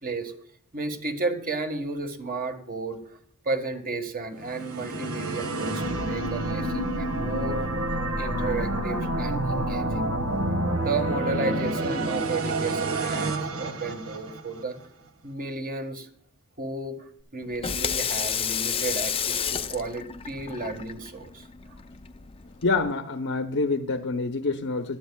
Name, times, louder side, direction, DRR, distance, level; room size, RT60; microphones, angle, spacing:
voice 1, 0.0-0.3 0.7-3.0 3.4-7.6 8.2-10.1 10.8-14.8 15.2-16.1 16.6-17.0 17.3-21.5, right 3 dB, 40° right, 5 dB, 1.6 m, -33 dB
sound 1, 4.4-14.6, right 1 dB, 85° right, 1.5 m, -28 dB
Water tap faucet / Sink (filling or washing), 17.4-22.9, left 8 dB, 25° left, 0.5 m, -31 dB
voice 2, 22.6-25.0, left 3 dB, 70° left, 7 dB, 0.9 m, -26 dB
19.5 x 12.0 x 2.3 m, 0.65 s
head